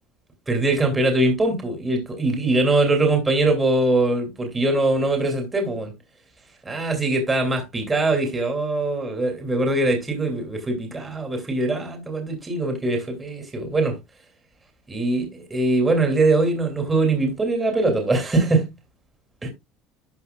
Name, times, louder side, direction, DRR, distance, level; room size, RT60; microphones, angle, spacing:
voice 1, 0.5-5.9 6.6-14.0 14.9-18.7 19.4-19.5, right 2 dB, 20° right, 2.8 m, -22 dB
12.5 x 5.5 x 2.3 m
supercardioid pair, 105°, 0 cm